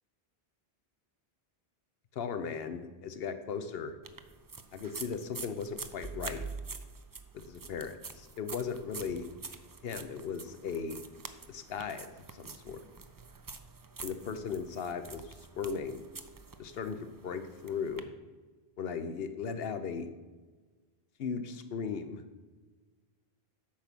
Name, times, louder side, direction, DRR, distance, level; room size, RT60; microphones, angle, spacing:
voice 1, 2.1-4.0 4.7-6.4 7.3-9.3 9.8-11.0 11.5-12.8 14.0-16.0 16.6-18.1 18.8-20.1 21.2-22.2, left 6 dB, 70° left, 10 dB, 1.0 m, -37 dB
sound 1, 4.0-18.0, right 4 dB, 35° right, 0.3 m, -46 dB
8.7 x 5.9 x 6.1 m, 1.3 s
omnidirectional pair, 1.0 m